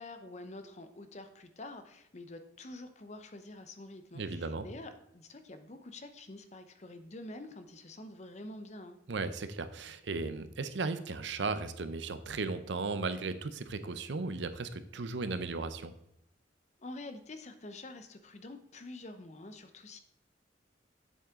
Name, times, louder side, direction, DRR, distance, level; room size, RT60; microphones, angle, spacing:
voice 1, 0.0-9.0 16.8-20.0, left 2 dB, 35° left, 9 dB, 0.7 m, -47 dB
voice 2, 4.1-4.7 9.1-15.9, right 3 dB, 75° right, 11 dB, 0.6 m, -36 dB
8.1 x 7.2 x 3.7 m, 0.80 s
head